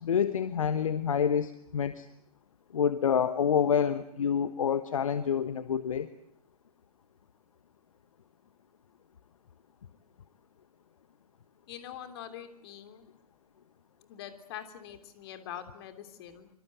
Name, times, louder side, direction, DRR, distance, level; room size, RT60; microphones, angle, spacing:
voice 1, 0.0-2.1 2.7-6.1, left 7 dB, 60° left, 12 dB, 1.3 m, -27 dB
voice 2, 11.7-13.1 14.1-16.5, left 10 dB, 40° left, 8 dB, 3.4 m, -44 dB
26.0 x 25.0 x 8.1 m, 0.69 s
figure-of-eight pair, 115°, 19 cm